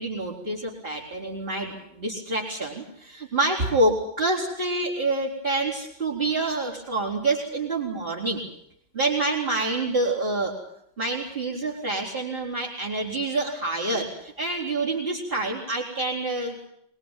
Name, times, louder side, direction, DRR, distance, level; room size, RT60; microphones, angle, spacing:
voice 1, 0.0-8.4 8.9-10.6 11.0-16.6, right 2 dB, 25° right, -2 dB, 4.4 m, -27 dB
24.0 x 21.5 x 9.0 m, 0.73 s
omnidirectional pair, 2.2 m